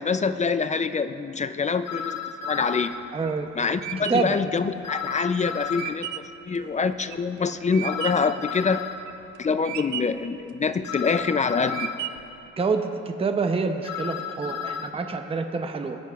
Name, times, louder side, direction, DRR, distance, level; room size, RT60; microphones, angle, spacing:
voice 1, 0.0-2.9 3.6-8.8 9.4-11.9, left 5 dB, 25° left, 12 dB, 0.4 m, -25 dB
sound 1, 1.8-3.0 4.8-6.0 7.8-9.0 10.8-12.0 13.8-14.9, left 8 dB, 60° left, 0.8 m, -33 dB
sound 2, 2.9-8.4 8.8-9.4 9.6-10.3 10.8-11.3 11.7-12.4, right 12 dB, 75° right, 0.5 m, -35 dB
voice 2, 3.1-3.5 4.1-4.4 12.6-12.9 13.2-16.0, right 4 dB, 20° right, 6 dB, 0.6 m, -26 dB
22.0 x 9.8 x 2.4 m, 2.9 s
cardioid pair, 90°, 30 cm